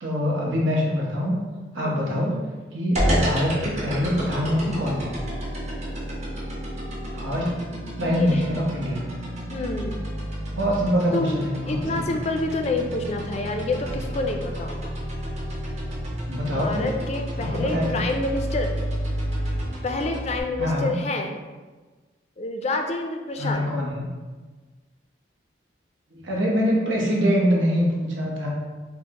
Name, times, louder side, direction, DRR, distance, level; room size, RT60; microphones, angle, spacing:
voice 1, 0.0-1.4 1.7-2.4 2.7-5.2 7.1-7.5 8.0-9.0 10.5-12.0 16.3-16.9 17.4-18.0 20.6-20.9 23.4-24.1 26.1-28.5, equal, 85° right, -2 dB, 0.9 m, -24 dB
voice 2, 1.8-2.1 8.0-8.4 9.5-9.9 11.1-11.4 11.7-14.9 16.5-18.7 19.8-21.3 22.4-23.6, left 2 dB, 35° left, 4 dB, 0.3 m, -28 dB
sound 1, 3.0-20.4, equal, 35° right, 0.8 m, -30 dB
5.6 x 2.0 x 2.9 m, 1.3 s
head